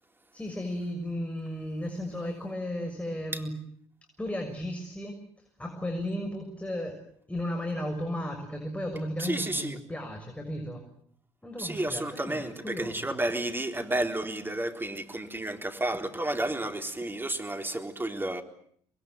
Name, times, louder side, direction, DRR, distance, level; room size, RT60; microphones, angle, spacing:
voice 1, 0.3-3.6 4.2-10.8 11.4-13.1, left 1 dB, 10° left, 6.6 m, -35 dB
voice 2, 9.3-9.7 11.6-12.5 13.0-18.4, right 1 dB, 15° right, 3.9 m, -31 dB
26.0 x 21.5 x 9.5 m
hypercardioid pair, 60°, 14 cm